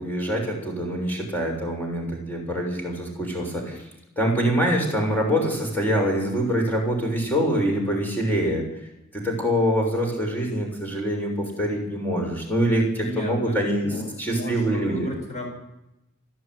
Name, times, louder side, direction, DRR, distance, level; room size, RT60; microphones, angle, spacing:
voice 1, 0.0-3.8 4.2-8.6 9.1-15.1, equal, 10° left, 0 dB, 6.6 m, -25 dB
voice 2, 13.0-15.5, equal, 30° left, 1 dB, 7.5 m, -34 dB
29.0 x 10.5 x 9.7 m, 0.89 s
head